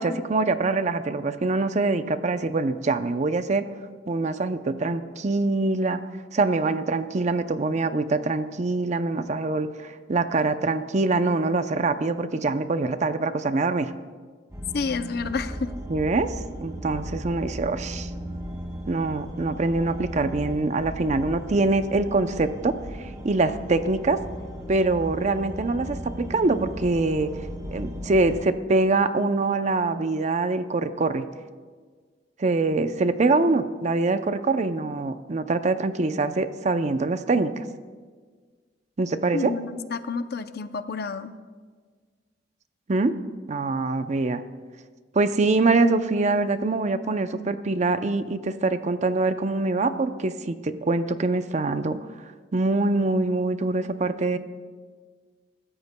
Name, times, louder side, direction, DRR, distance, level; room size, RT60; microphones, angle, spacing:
voice 1, 0.0-3.6 4.1-6.0 6.3-13.9 15.9-16.3 16.6-18.1 18.9-24.2 24.7-31.3 32.4-37.7 39.0-39.5 42.9-43.1 43.5-44.4 45.1-52.0 52.5-54.4, right 3 dB, 40° right, 10 dB, 0.5 m, -24 dB
sound 1, 14.5-28.4, equal, 20° right, 2.1 m, -36 dB
voice 2, 14.7-15.7 39.3-41.3, left 4 dB, 60° left, 11 dB, 0.6 m, -29 dB
24.5 x 13.5 x 2.2 m, 1.5 s
head